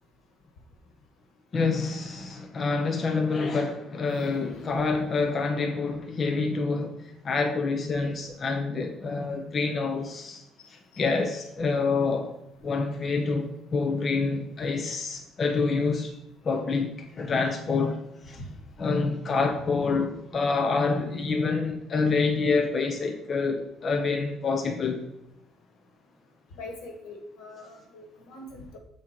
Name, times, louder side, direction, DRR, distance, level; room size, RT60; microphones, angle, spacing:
voice 1, 1.5-7.0 7.2-10.4 10.7-12.3 12.6-16.1 16.4-18.0 18.3-18.4 18.8-25.0, left 4 dB, 25° left, 0.5 m, -27 dB
voice 2, 26.5-28.8, left 2 dB, 80° left, 1.6 m, -42 dB
7.4 x 3.8 x 4.4 m
cardioid pair, 180°, 0 cm